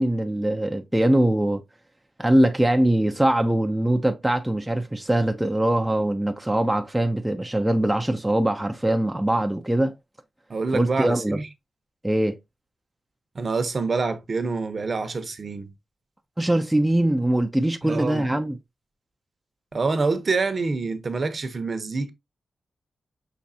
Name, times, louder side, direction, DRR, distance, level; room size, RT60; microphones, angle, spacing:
voice 1, 0.0-1.6 2.2-9.9 10.7-11.4 12.0-12.4 16.4-18.6, right 1 dB, 5° right, 0.5 m, -22 dB
voice 2, 10.5-11.5 13.3-15.7 17.8-18.3 19.7-22.1, right 4 dB, 40° right, 0.8 m, -26 dB
5.9 x 3.1 x 2.6 m
wide cardioid pair, 115°, 0 cm